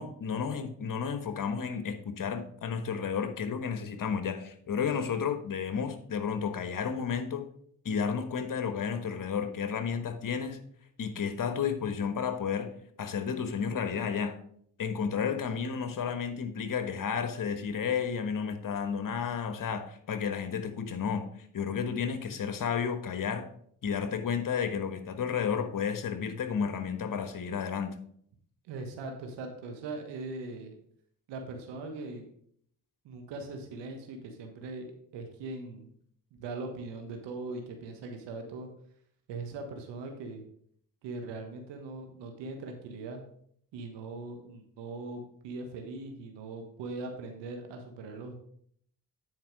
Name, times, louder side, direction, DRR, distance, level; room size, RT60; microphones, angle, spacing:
voice 1, 0.0-7.4 7.8-10.6 11.0-12.7 13.0-14.4 14.8-21.3 21.5-23.5 23.8-28.0, left 6 dB, 50° left, 9 dB, 1.3 m, -32 dB
voice 2, 28.7-30.7 31.3-32.3 33.0-35.9 36.3-38.7 39.3-40.4 41.0-43.2 43.7-48.4, right 3 dB, 85° right, 4 dB, 1.3 m, -40 dB
9.5 x 4.7 x 4.7 m, 0.64 s
supercardioid pair, 55°, 41 cm